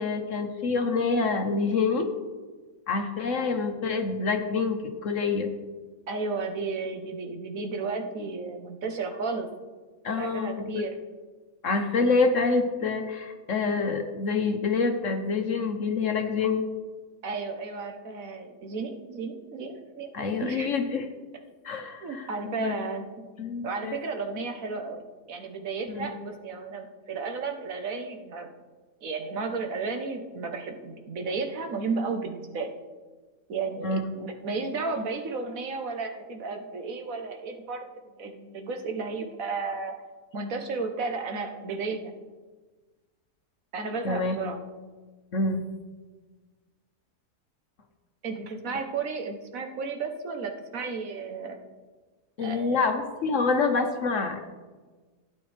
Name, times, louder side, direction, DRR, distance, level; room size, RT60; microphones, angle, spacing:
voice 1, 0.0-2.1 2.9-5.5 10.0-10.8 11.6-16.6 20.1-21.0 21.6-22.8 23.4-24.0 25.9-26.1 33.8-34.0 44.0-44.4 45.3-45.6 52.4-54.4, left 4 dB, 55° left, 5 dB, 1.2 m, -27 dB
voice 2, 6.1-9.5 10.2-10.9 17.2-20.7 22.0-23.0 23.6-28.5 29.0-32.7 33.5-37.8 38.2-39.9 40.3-42.1 43.7-44.6 48.2-51.6 52.4-52.9, right 4 dB, 60° right, 5 dB, 1.3 m, -33 dB
16.0 x 8.9 x 3.3 m, 1.3 s
omnidirectional pair, 1.7 m